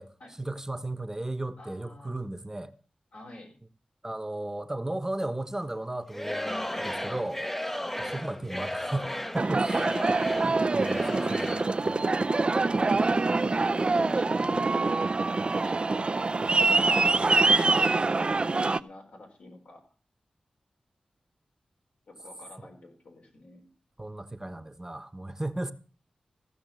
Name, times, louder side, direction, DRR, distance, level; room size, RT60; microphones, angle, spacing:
voice 1, 0.4-2.7 4.0-7.7 8.0-9.8 10.4-11.6 16.7-17.9 22.6-22.7 24.0-25.7, right 1 dB, 20° right, 1.1 m, -35 dB
voice 2, 1.6-2.1 3.1-3.5 6.4-7.0 7.8-7.9 9.4-9.6 11.2-12.1 13.0-15.8 17.7-19.9 22.1-23.7, left 2 dB, 80° left, 4.4 m, -48 dB
Singing / Crowd, 6.1-11.8, left 1 dB, 10° left, 0.8 m, -34 dB
Aircraft, 9.4-18.8, right 3 dB, 45° right, 0.5 m, -25 dB
15.5 x 6.1 x 7.6 m
cardioid pair, 45°, 2 cm